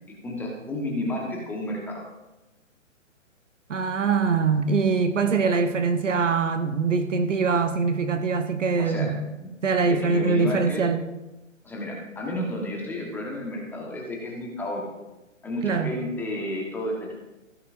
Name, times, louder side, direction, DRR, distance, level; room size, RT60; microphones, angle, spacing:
voice 1, 0.2-2.1 8.8-9.1 9.4-9.5 9.8-10.8 11.6-14.8 15.4-17.2, left 1 dB, 5° left, 1.4 m, -31 dB
voice 2, 3.7-9.2 9.6-11.0 15.6-15.9, right 4 dB, 65° right, 1.1 m, -23 dB
15.5 x 12.0 x 2.7 m
figure-of-eight pair, 140°, 39 cm